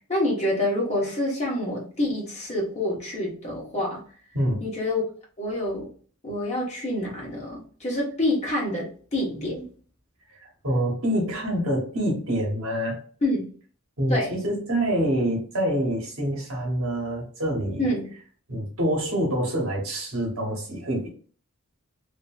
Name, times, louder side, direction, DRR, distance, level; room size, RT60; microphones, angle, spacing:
voice 1, 0.1-4.0 4.6-5.0 5.4-5.9 6.2-9.6 13.2-13.5 14.1-14.3 17.8-18.1, left 1 dB, 30° left, -3 dB, 1.0 m, -27 dB
voice 2, 10.4-13.0 14.0-17.9 18.5-21.1, right 1 dB, 70° right, 0 dB, 1.0 m, -26 dB
2.7 x 2.5 x 2.3 m, 0.43 s
head